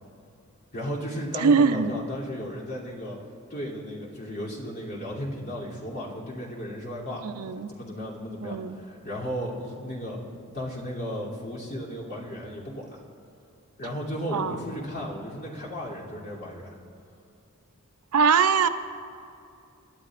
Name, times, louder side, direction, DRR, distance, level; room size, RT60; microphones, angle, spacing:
voice 1, 0.7-3.2 3.5-7.2 7.7-13.0 13.8-16.8, equal, 45° left, -6 dB, 2.9 m, -35 dB
voice 2, 1.4-1.9 7.2-7.7 8.4-8.8 14.3-14.6 18.1-18.7, right 5 dB, 85° right, 10 dB, 0.6 m, -22 dB
28.0 x 11.5 x 2.5 m, 2.5 s
head